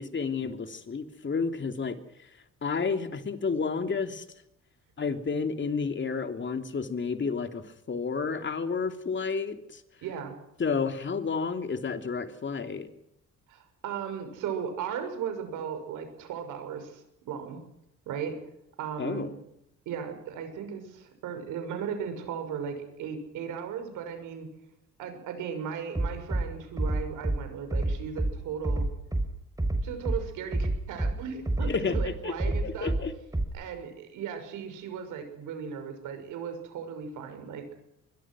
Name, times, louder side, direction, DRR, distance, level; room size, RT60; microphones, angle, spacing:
voice 1, 0.0-2.0 2.6-4.2 5.0-9.8 10.6-12.9 19.0-19.3 31.7-32.3 32.6-33.1, left 5 dB, 40° left, 7 dB, 2.9 m, -31 dB
voice 2, 10.0-10.4 13.5-17.6 18.1-18.4 18.8-19.3 19.9-24.5 25.0-28.9 29.8-32.9 33.5-37.7, right 7 dB, 90° right, 7 dB, 6.2 m, -36 dB
Bass drum, 25.9-26.4 26.8-27.4 27.7-28.3 28.6-29.3 29.6-30.2 30.5-31.1 31.5-32.1 32.4-33.0 33.3-33.4, right 2 dB, 10° right, 4.8 m, -27 dB
24.5 x 22.5 x 6.3 m, 0.81 s
cardioid pair, 90°, 30 cm